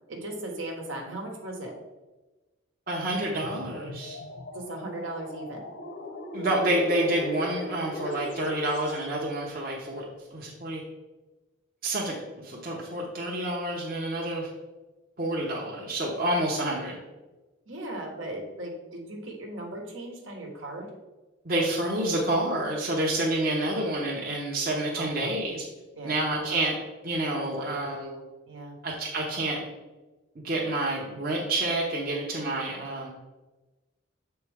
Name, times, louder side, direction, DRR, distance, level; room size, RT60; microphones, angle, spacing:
voice 1, 0.1-1.7 4.5-5.7 17.7-20.9 25.0-25.4 25.9-26.5 27.6-28.8, right 1 dB, 75° right, 1 dB, 1.3 m, -38 dB
voice 2, 2.9-4.2 6.3-10.0 10.3-10.8 11.8-12.2 12.4-14.5 15.2-16.9 21.4-25.6 26.0-26.7 27.0-28.0 28.8-29.6 30.4-33.1, right 1 dB, 45° right, -2 dB, 0.9 m, -28 dB
sound 1, 3.3-9.1, left 1 dB, 60° left, 0.8 m, -38 dB
7.3 x 4.4 x 3.5 m, 1.1 s
head